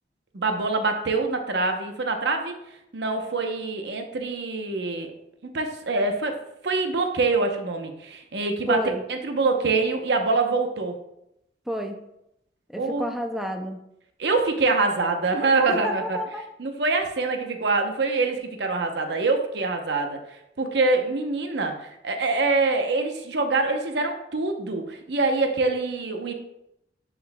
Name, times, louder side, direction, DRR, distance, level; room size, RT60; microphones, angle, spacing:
voice 1, 0.3-2.6 2.9-5.1 5.5-8.8 9.1-11.0 12.8-13.1 14.2-16.2 16.6-20.2 20.6-26.3, right 3 dB, 65° right, 4 dB, 0.8 m, -25 dB
voice 2, 8.7-9.0 11.7-12.0 12.7-13.8 15.7-16.4, equal, ahead, 4 dB, 0.4 m, -30 dB
9.9 x 4.8 x 2.2 m, 0.82 s
head